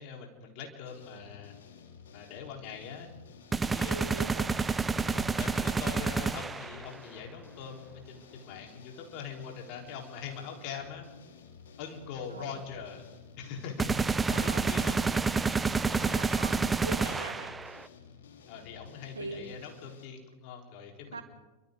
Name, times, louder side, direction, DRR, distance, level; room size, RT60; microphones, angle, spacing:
voice 1, 0.0-1.6 2.1-3.1 3.6-4.1 5.1-11.1 11.8-13.0 13.4-15.1 15.9-16.3 17.0-17.3 18.5-21.2, left 6 dB, 45° left, 1 dB, 4.2 m, -43 dB
sound 1, 0.9-20.1, left 6 dB, 60° left, 3.0 m, -53 dB
sound 2, 3.5-6.9 13.8-17.9, right 4 dB, 15° right, 0.7 m, -29 dB
voice 2, 3.9-4.5 12.3-12.6 14.3-15.1 15.9-17.5 19.2-19.5 21.1-21.2, right 3 dB, 75° right, 6 dB, 2.5 m, -41 dB
29.0 x 25.0 x 3.9 m, 1.1 s
figure-of-eight pair, 90°, 0 cm